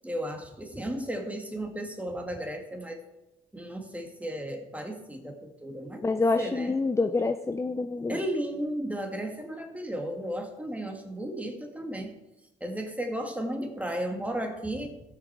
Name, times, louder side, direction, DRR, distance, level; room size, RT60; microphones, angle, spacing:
voice 1, 0.0-3.0 3.5-6.8 8.1-12.1 12.6-15.0, right 1 dB, 5° right, 3 dB, 2.1 m, -34 dB
voice 2, 6.0-8.2, left 3 dB, 15° left, 9 dB, 0.5 m, -27 dB
16.0 x 6.6 x 4.7 m, 0.95 s
cardioid pair, 90°, 20 cm